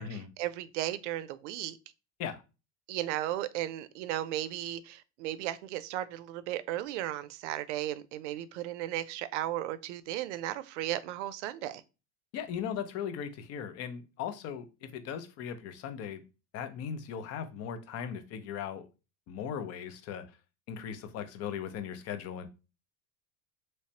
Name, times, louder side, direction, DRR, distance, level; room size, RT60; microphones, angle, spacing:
voice 1, 0.0-1.8 2.9-11.8, right 13 dB, 90° right, 0.5 m, -35 dB
voice 2, 12.3-16.2 16.5-18.9 19.3-20.2 20.7-22.5, left 8 dB, 45° left, 0.6 m, -38 dB
3.2 x 3.1 x 2.8 m
supercardioid pair, 130°, 34 cm